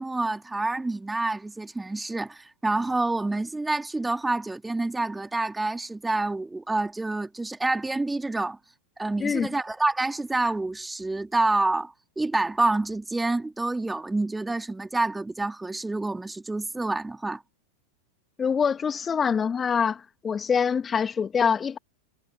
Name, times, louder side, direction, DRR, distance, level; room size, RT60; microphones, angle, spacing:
voice 1, 0.0-8.6 9.0-17.4, right 2 dB, 5° right, 3.2 m, -28 dB
voice 2, 18.4-21.8, left 6 dB, 20° left, 2.2 m, -25 dB
figure-of-eight pair, 90°, 0 cm